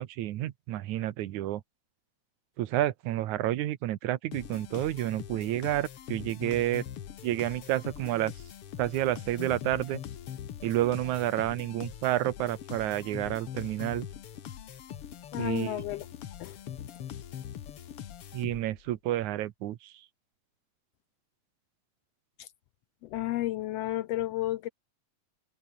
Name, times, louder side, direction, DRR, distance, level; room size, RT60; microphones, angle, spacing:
voice 1, 0.0-1.6 2.6-6.9 7.2-8.3 8.8-10.0 10.6-14.1 15.3-15.8 18.3-19.9, right 14 dB, 85° right, 2.5 m, -30 dB
sound 1, 4.3-18.9, left 10 dB, 55° left, 2.2 m, -42 dB
voice 2, 15.3-16.1 16.4-16.6 22.4-22.5 23.0-24.7, left 15 dB, 75° left, 1.5 m, -32 dB
omnidirectional pair, 3.3 m